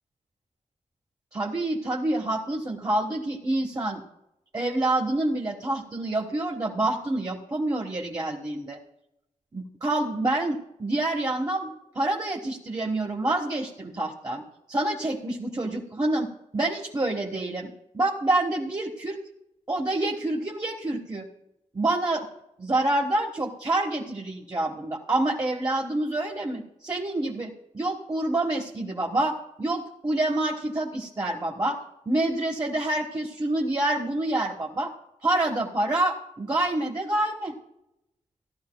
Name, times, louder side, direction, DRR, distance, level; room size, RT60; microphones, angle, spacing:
voice 1, 1.3-4.0 4.5-8.8 9.5-14.4 14.7-16.3 16.5-19.2 19.7-21.2 21.7-22.2 22.6-31.8 32.0-34.9 35.2-37.5, right 2 dB, 30° right, -2 dB, 1.5 m, -27 dB
16.0 x 12.0 x 2.3 m, 0.84 s
cardioid pair, 75°, 13 cm